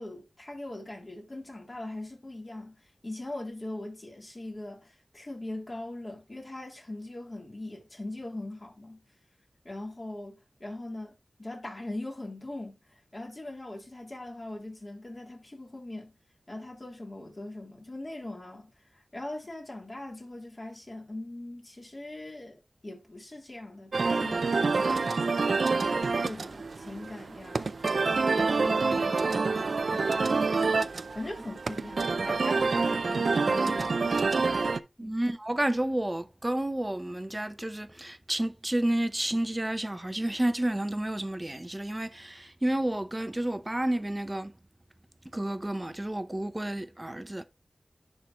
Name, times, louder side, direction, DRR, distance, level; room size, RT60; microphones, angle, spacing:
voice 1, 0.0-9.0 9.6-16.1 16.5-25.3 25.9-30.9 31.1-34.4 35.0-35.2, left 2 dB, 35° left, 3.3 m, -41 dB
sound 1, 23.9-34.8, right 4 dB, 75° right, 0.5 m, -27 dB
voice 2, 35.0-44.5 45.3-47.4, right 1 dB, 20° right, 0.7 m, -30 dB
10.5 x 4.5 x 3.0 m
wide cardioid pair, 70°, 0 cm